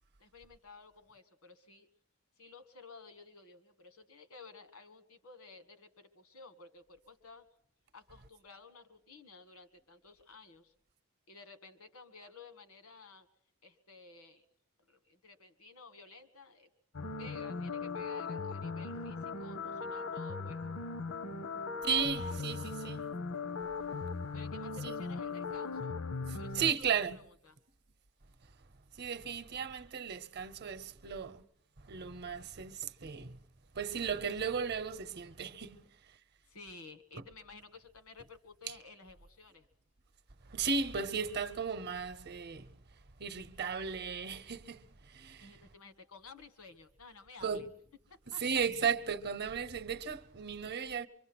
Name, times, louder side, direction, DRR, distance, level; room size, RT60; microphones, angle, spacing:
voice 1, 0.2-1.9 2.4-7.5 7.9-10.7 11.3-13.3 13.6-14.4 14.9-16.7 17.2-20.6 22.0-22.9 24.3-25.9 26.3-27.6 29.5-29.6 36.5-39.7 45.4-47.7 48.3-48.4 50.9-51.1, left 4 dB, 90° left, 1.6 m, -54 dB
sound 1, 16.9-26.7, left 4 dB, 70° left, 0.8 m, -38 dB
voice 2, 21.8-23.1 24.8-25.1 26.3-27.2 28.9-31.4 31.8-33.4 33.7-35.8 38.7-38.8 40.5-42.7 43.2-45.6 47.4-47.7 48.4-51.1, right 6 dB, 50° right, 0.8 m, -35 dB
24.5 x 23.5 x 6.1 m
head